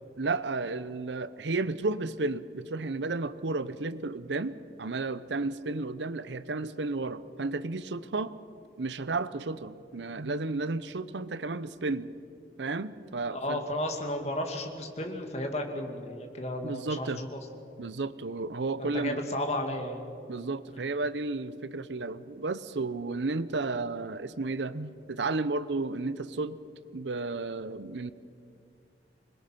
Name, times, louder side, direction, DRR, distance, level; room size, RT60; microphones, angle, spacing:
voice 1, 0.2-8.3 8.8-12.1 12.6-13.6 16.6-17.2 17.8-19.2 20.3-26.6 26.9-28.1, right 3 dB, 85° right, 15 dB, 0.8 m, -32 dB
voice 2, 13.3-17.4 18.8-20.0 20.7-20.8, left 1 dB, 40° left, 4 dB, 2.3 m, -33 dB
26.5 x 21.5 x 5.9 m, 2.4 s
head